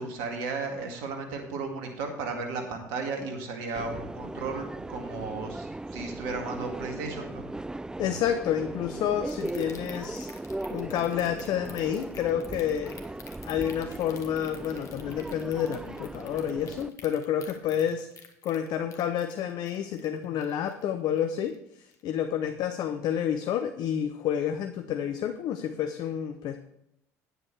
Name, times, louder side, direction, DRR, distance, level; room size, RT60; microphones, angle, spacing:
voice 1, 0.0-7.5, right 4 dB, 70° right, 3 dB, 2.1 m, -34 dB
Subway metro underground, 3.8-16.9, right 2 dB, 10° right, 0.4 m, -38 dB
voice 2, 8.0-10.3 10.7-13.0 13.4-26.6, left 9 dB, 60° left, 8 dB, 0.7 m, -29 dB
sound 1, 9.3-20.9 21.2-21.6 21.9-22.0, left 6 dB, 40° left, 1.6 m, -48 dB
9.6 x 8.0 x 4.6 m, 0.79 s
hypercardioid pair, 60°, 8 cm